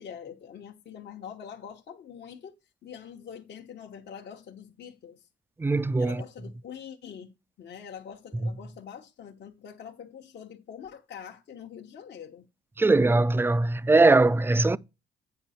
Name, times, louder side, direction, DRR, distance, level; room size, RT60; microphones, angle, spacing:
voice 1, 0.0-2.5 2.8-5.3 6.0-12.5, left 8 dB, 60° left, 1.0 m, -44 dB
voice 2, 5.6-6.2 12.8-14.8, right 3 dB, 10° right, 0.4 m, -21 dB
8.8 x 5.5 x 4.2 m
cardioid pair, 90°, 20 cm